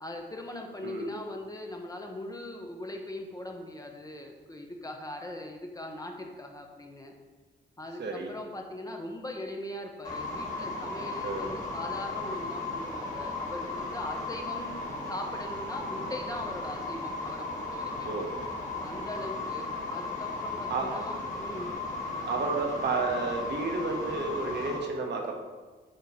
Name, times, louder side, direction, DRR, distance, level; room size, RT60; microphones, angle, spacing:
voice 1, 0.0-7.1 7.8-14.8 15.1-18.1 18.8-21.7 22.2-22.3, left 1 dB, 20° left, 2 dB, 0.9 m, -40 dB
voice 2, 0.8-1.1 8.0-8.3 11.2-11.5 18.0-18.3 20.7-20.9 22.3-25.4, right 3 dB, 60° right, 1 dB, 1.3 m, -31 dB
sound 1, 10.0-24.8, left 2 dB, 40° left, 2.0 m, -36 dB
8.9 x 3.1 x 5.6 m, 1.3 s
cardioid pair, 110°, 19 cm